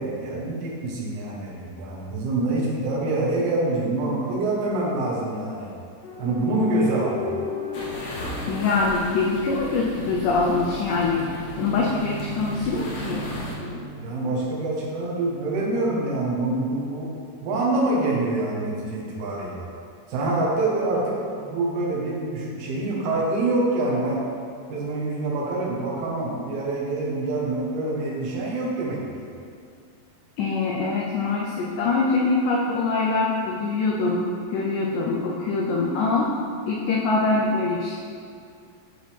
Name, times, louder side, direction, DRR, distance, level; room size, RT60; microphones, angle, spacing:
voice 1, 0.0-5.7 6.2-7.3 14.0-17.1 17.4-19.7 20.1-24.2 24.7-29.3, right 2 dB, 85° right, -4 dB, 3.3 m, -26 dB
sound 1, 6.0-9.7 11.1-14.9 15.7-16.9, left 2 dB, 40° left, 1.5 m, -36 dB
sound 2, 7.7-13.5, left 1 dB, 60° left, 1.7 m, -36 dB
voice 2, 8.5-11.3 11.6-13.3 13.6-13.9 30.4-36.3 36.7-37.9, left 3 dB, 80° left, -2 dB, 1.9 m, -24 dB
11.5 x 4.8 x 3.4 m, 2.3 s
omnidirectional pair, 4.3 m